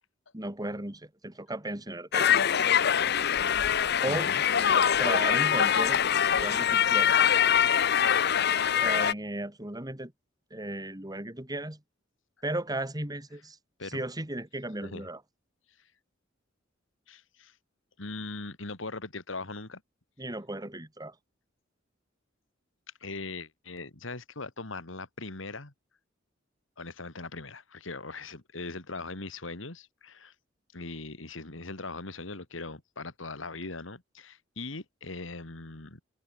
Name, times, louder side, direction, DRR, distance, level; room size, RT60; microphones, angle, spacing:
voice 1, 0.3-2.3 4.0-4.3 5.0-6.0 6.3-7.1 8.7-10.1 10.5-11.8 12.4-13.6 13.8-15.2 20.2-21.1, right 1 dB, 20° right, 2.7 m, -35 dB
sound 1, 2.1-9.1, left 8 dB, 55° left, 0.8 m, -24 dB
voice 2, 4.1-4.4 13.8-14.0 14.8-15.1 17.1-17.5 18.0-19.8 23.0-25.7 26.8-30.3 30.7-36.0, left 3 dB, 70° left, 2.4 m, -40 dB
head